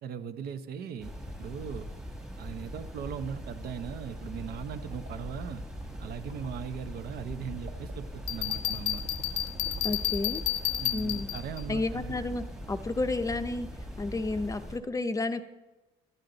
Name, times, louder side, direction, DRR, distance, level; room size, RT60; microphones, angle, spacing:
voice 1, 0.0-1.9 2.4-5.6 6.0-9.0 10.8-12.1, right 7 dB, 70° right, 9 dB, 0.9 m, -39 dB
sound 1, 1.0-14.8, equal, 5° right, 1.4 m, -41 dB
sound 2, 4.9-11.0, right 3 dB, 50° right, 1.4 m, -49 dB
Bell, 8.3-11.6, left 13 dB, 85° left, 0.6 m, -31 dB
voice 2, 9.8-10.4 10.9-11.3 11.7-13.7 14.0-15.4, left 2 dB, 20° left, 10 dB, 0.6 m, -31 dB
12.5 x 9.3 x 3.9 m, 1.1 s
cardioid pair, 110°, 17 cm